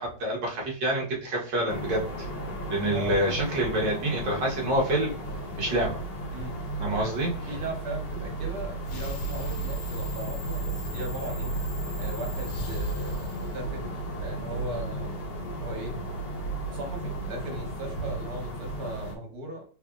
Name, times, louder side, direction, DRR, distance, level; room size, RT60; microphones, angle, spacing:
voice 1, 0.0-2.3 2.7-5.2 5.6-6.0 6.8-7.3, right 1 dB, 60° right, -3 dB, 1.7 m, -27 dB
sound 1, 1.7-19.1, right 2 dB, 60° left, 1.4 m, -34 dB
voice 2, 7.5-11.6 12.0-15.1 15.6-16.0 16.6-19.6, right 1 dB, 80° right, 1 dB, 2.0 m, -38 dB
sound 2, 8.8-14.3, right 1 dB, 85° left, 1.5 m, -35 dB
4.1 x 3.3 x 2.4 m, 0.41 s
omnidirectional pair, 2.3 m